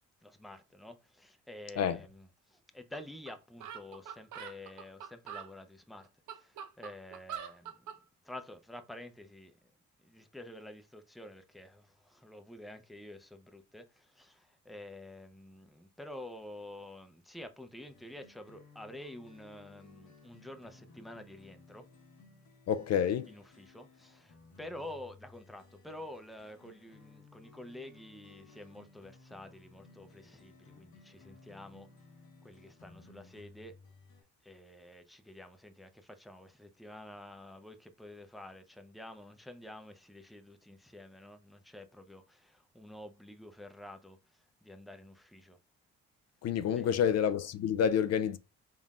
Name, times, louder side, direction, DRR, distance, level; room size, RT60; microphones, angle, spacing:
voice 1, 0.2-7.9 8.2-9.5 10.0-21.9 23.3-31.9 32.4-33.7 34.4-45.6 46.7-47.2, left 1 dB, ahead, 0.6 m, -49 dB
sound 1, 2.9-3.0 3.3-3.4 3.6-5.5 6.0-8.0, right 8 dB, 75° right, 0.8 m, -44 dB
sound 2, 17.9-34.2, left 3 dB, 75° left, 1.2 m, -58 dB
voice 2, 22.7-23.3 46.4-48.4, left 8 dB, 60° left, 0.4 m, -28 dB
4.0 x 3.7 x 2.4 m
cardioid pair, 90°, 30 cm